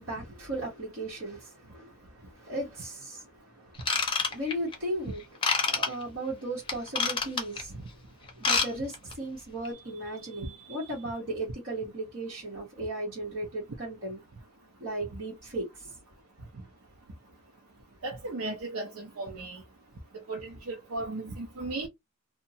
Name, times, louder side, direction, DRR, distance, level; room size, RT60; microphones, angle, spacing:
voice 1, 0.0-5.2 5.6-7.8 8.4-14.2 14.8-15.9, right 1 dB, 65° right, 1.2 m, -36 dB
Ratchet pawl / Tools, 3.8-4.7 5.4-5.9 6.7-7.6 8.3-8.7 8.9-9.1 9.6-9.7, left 5 dB, 25° left, 0.6 m, -26 dB
voice 2, 18.0-19.6 20.3-21.9, right 2 dB, 85° right, 0.7 m, -36 dB
2.7 x 2.2 x 2.7 m
head